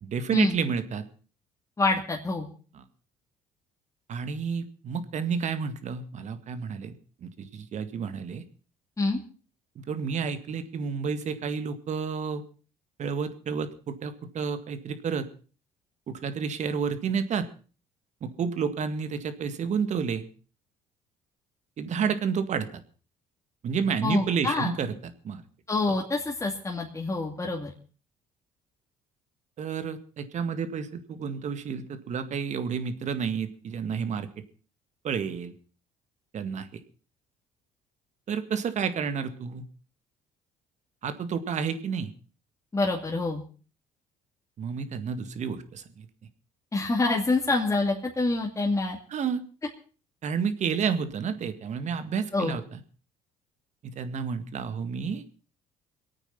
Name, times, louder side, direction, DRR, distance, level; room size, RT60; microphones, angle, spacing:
voice 1, 0.0-1.0 2.7-2.8 4.1-6.9 7.2-8.4 9.8-12.4 13.0-15.3 16.1-17.5 18.2-20.3 21.8-22.8 23.6-25.4 25.9-26.0 29.6-34.3 35.0-35.5 36.3-36.7 38.3-39.6 41.0-42.1 44.6-46.1 49.1-49.4 50.2-52.8 53.8-55.2, right 6 dB, 50° right, 10 dB, 2.0 m, -30 dB
voice 2, 1.8-2.5 9.0-9.2 24.0-24.7 25.7-27.7 42.7-43.4 46.7-49.0 52.3-52.6, left 3 dB, 20° left, -1 dB, 2.5 m, -26 dB
22.5 x 9.0 x 5.8 m, 0.39 s
supercardioid pair, 80°, 15 cm